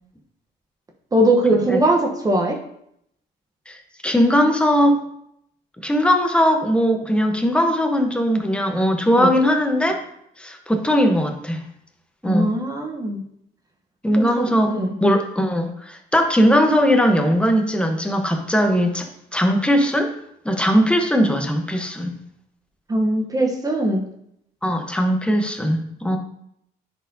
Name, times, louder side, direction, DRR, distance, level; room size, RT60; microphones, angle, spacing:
voice 1, 1.1-2.6 9.2-9.3 12.2-13.2 14.2-14.9 22.9-24.1, right 1 dB, 20° right, 1 dB, 1.0 m, -20 dB
voice 2, 3.7-5.0 5.8-10.0 10.4-11.6 12.2-12.5 14.0-20.1 20.4-22.1 24.6-26.2, equal, 5° left, 4 dB, 1.0 m, -19 dB
9.8 x 4.5 x 2.7 m, 0.74 s
cardioid pair, 110°, 17 cm